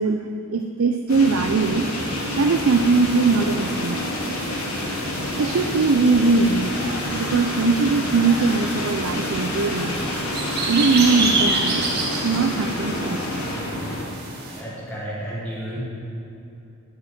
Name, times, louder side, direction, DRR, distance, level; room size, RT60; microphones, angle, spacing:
voice 1, 0.0-1.9 2.4-4.1 5.4-6.7 7.1-10.0 10.7-13.5, right 4 dB, 70° right, 6 dB, 0.5 m, -21 dB
sound 1, 1.1-14.0, left 1 dB, 90° left, 2.6 m, -28 dB
sound 2, 1.6-14.6, right 3 dB, 50° right, 1.6 m, -31 dB
voice 2, 14.6-15.8, right 1 dB, 5° left, -9 dB, 1.7 m, -32 dB
10.5 x 8.2 x 7.2 m, 2.7 s
head